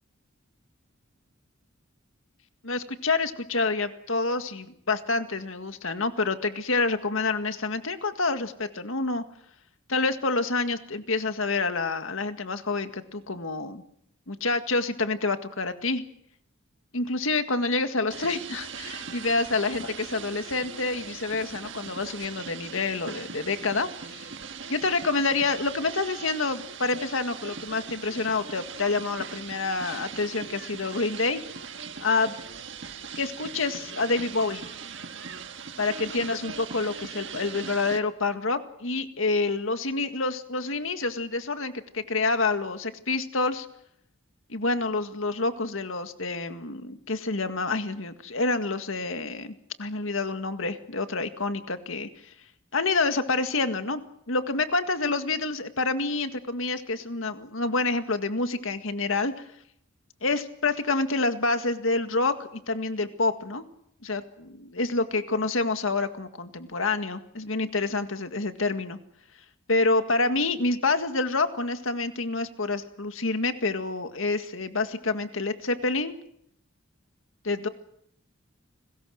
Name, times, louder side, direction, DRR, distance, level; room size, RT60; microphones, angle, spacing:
voice 1, 2.6-9.2 9.9-13.8 14.3-16.0 16.9-24.3 24.7-31.4 32.0-32.4 33.2-34.7 35.8-43.7 44.5-52.1 52.7-54.0 54.3-59.3 60.2-63.6 64.0-69.0 69.7-76.2 77.4-77.7, left 3 dB, 75° left, 8 dB, 1.9 m, -28 dB
sound 1, 18.1-38.0, right 6 dB, 60° right, 1.6 m, -40 dB
30.0 x 21.0 x 6.5 m, 0.74 s
head